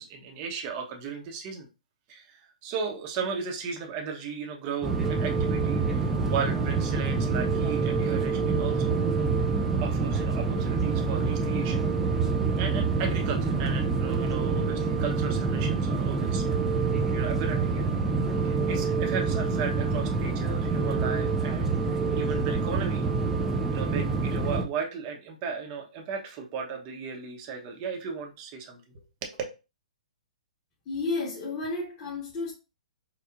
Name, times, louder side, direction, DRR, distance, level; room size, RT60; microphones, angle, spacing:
voice 1, 0.0-1.7 2.1-8.9 9.8-11.9 12.6-16.4 17.1-17.9 18.4-23.1 23.7-29.4, right 6 dB, 30° right, 0.9 m, -35 dB
sound 1, 4.8-24.6, right 4 dB, 10° right, 0.4 m, -26 dB
voice 2, 30.8-32.5, left 3 dB, 30° left, 1.5 m, -32 dB
4.5 x 2.3 x 2.5 m
hypercardioid pair, 150°, 4 cm